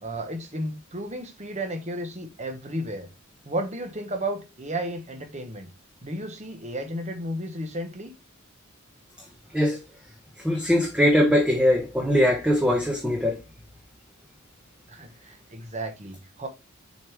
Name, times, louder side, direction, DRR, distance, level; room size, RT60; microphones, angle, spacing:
voice 1, 0.0-3.1 3.4-5.7 6.0-8.1 14.9-16.5, right 1 dB, 30° right, 1.2 m, -33 dB
voice 2, 10.4-13.4, equal, 5° right, 0.9 m, -21 dB
7.1 x 4.6 x 3.4 m
head